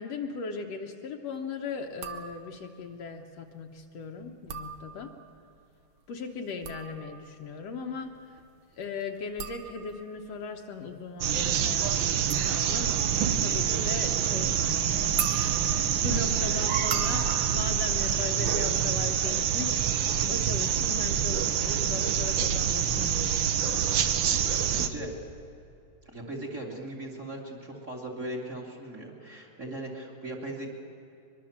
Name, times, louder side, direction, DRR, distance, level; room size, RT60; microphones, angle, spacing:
voice 1, 0.0-5.1 6.1-8.4 8.7-12.2 12.4-13.0 13.4-15.2 15.6-23.9, left 5 dB, 65° left, 3 dB, 2.1 m, -38 dB
sound 1, 1.9-2.8 4.3-5.4 6.4-19.1 19.4-19.9, right 7 dB, 60° right, 1.5 m, -41 dB
sound 2, 11.2-24.9, right 8 dB, 75° right, 1.1 m, -26 dB
voice 2, 15.8-16.7 24.6-25.1 26.0-30.7, right 1 dB, 25° right, 0 dB, 3.0 m, -39 dB
23.0 x 22.5 x 7.3 m, 2.6 s
omnidirectional pair, 3.3 m